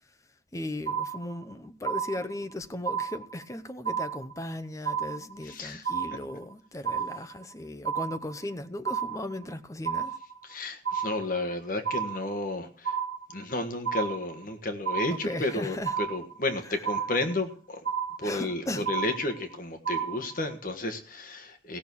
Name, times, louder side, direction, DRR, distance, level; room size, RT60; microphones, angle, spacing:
voice 1, 0.5-10.2 15.1-16.0 16.6-16.8 18.2-18.9, left 1 dB, 20° left, 0.7 m, -37 dB
sound 1, 0.9-1.5 1.9-2.5 2.9-3.5 3.9-4.5 4.9-5.5 5.9-6.5 6.9-7.5 7.9-8.5 8.9-9.5 9.9-10.5 10.9-11.5 11.9-12.5 12.8-13.5 13.8-14.5 14.9-15.5 15.9-16.5 16.9-17.5 17.9-18.5 18.9-19.5 19.9-20.5, right 7 dB, 75° right, 1.6 m, -32 dB
voice 2, 5.4-5.8 10.4-13.0 13.3-17.8 18.2-21.8, left 2 dB, 50° left, 1.5 m, -32 dB
16.0 x 6.3 x 7.0 m
head